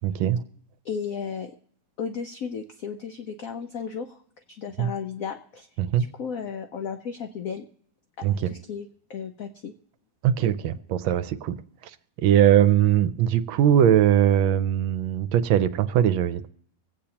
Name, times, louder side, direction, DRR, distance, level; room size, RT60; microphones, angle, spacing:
voice 1, 0.0-0.4 4.8-4.9 5.8-6.1 8.2-8.5 10.2-11.6 12.2-16.5, right 10 dB, 80° right, 13 dB, 1.4 m, -21 dB
voice 2, 0.8-1.5 2.0-4.2 4.5-5.7 6.0-7.7 8.2-9.7, left 6 dB, 80° left, 6 dB, 0.7 m, -34 dB
25.5 x 8.6 x 2.9 m, 0.65 s
omnidirectional pair, 2.2 m